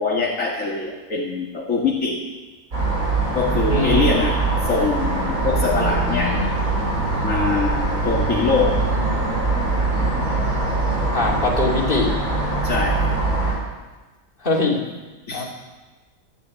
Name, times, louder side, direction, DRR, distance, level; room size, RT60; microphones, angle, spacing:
voice 1, 0.0-2.2 3.3-6.5 7.2-8.9 12.6-13.1 15.3-15.4, left 4 dB, 65° left, -2 dB, 2.2 m, -23 dB
sound 1, 2.7-13.5, right 3 dB, 75° right, 5.3 m, -22 dB
voice 2, 3.7-4.1 11.1-12.1 14.4-14.8 15.3-15.5, left 3 dB, 35° left, -2 dB, 2.9 m, -22 dB
13.5 x 10.5 x 8.6 m, 1.2 s
omnidirectional pair, 1.5 m